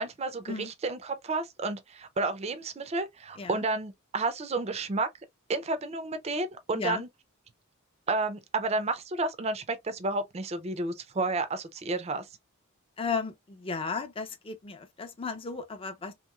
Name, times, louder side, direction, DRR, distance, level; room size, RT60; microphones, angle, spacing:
voice 1, 0.0-5.1 5.5-7.1 8.1-12.2, right 3 dB, 30° right, 0.4 m, -31 dB
voice 2, 13.0-16.1, left 4 dB, 25° left, 0.5 m, -34 dB
3.0 x 2.9 x 2.3 m
head